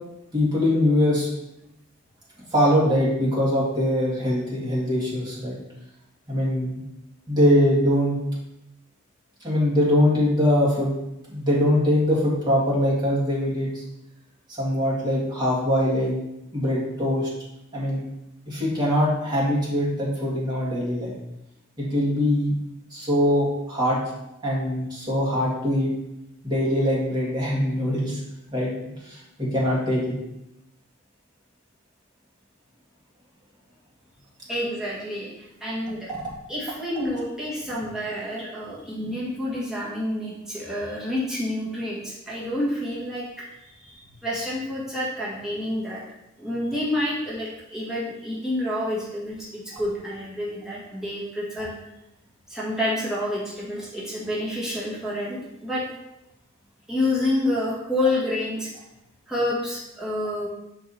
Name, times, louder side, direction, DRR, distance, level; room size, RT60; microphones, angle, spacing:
voice 1, 0.3-1.3 2.5-5.6 6.3-6.8 7.3-8.2 9.4-10.9 11.3-13.8 14.6-16.2 16.5-17.3 17.7-18.0 18.5-21.1 21.8-22.5 22.9-24.0 24.4-25.9 26.4-28.2 28.5-28.7 29.0-30.0 36.1-36.2 49.7-49.8, equal, 20° right, -6 dB, 2.1 m, -22 dB
voice 2, 34.5-36.1 36.5-43.3 43.6-46.0 46.4-51.7 52.5-55.8 56.9-58.7 59.3-60.5, left 1 dB, 5° right, -7 dB, 1.6 m, -28 dB
6.0 x 4.7 x 4.2 m, 0.87 s
head